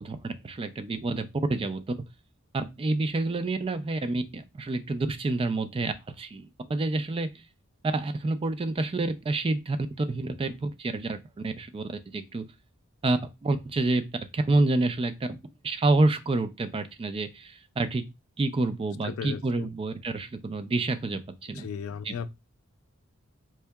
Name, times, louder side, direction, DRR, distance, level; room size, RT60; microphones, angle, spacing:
voice 1, 0.0-2.0 2.5-7.3 7.8-12.4 13.0-14.0 14.3-15.1 15.6-18.0 18.4-21.7 22.0-22.1, right 2 dB, 25° right, 0.3 m, -28 dB
voice 2, 19.0-19.7 21.5-22.3, left 6 dB, 70° left, 0.3 m, -36 dB
4.3 x 2.7 x 2.2 m
head